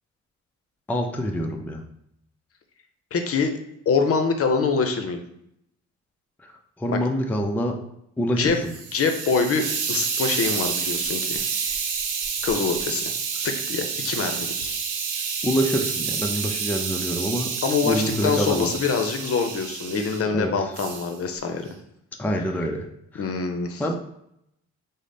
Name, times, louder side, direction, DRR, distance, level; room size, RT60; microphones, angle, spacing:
voice 1, 0.9-1.8 6.8-7.8 8.2-8.7 15.4-17.5 17.8-18.7 20.3-20.7 22.2-22.9 23.1-23.2 23.8-24.0, equal, 5° left, 2 dB, 0.4 m, -26 dB
voice 2, 3.1-3.5 3.9-5.2 6.9-7.0 8.4-8.6 8.9-11.5 12.4-13.1 13.4-14.8 17.6-21.7 23.1-23.8, left 5 dB, 50° left, 6 dB, 0.7 m, -25 dB
Hiss, 8.4-20.2 20.7-21.1, right 6 dB, 90° right, 0.7 m, -29 dB
5.0 x 2.1 x 3.9 m, 0.78 s
cardioid pair, 90°, 30 cm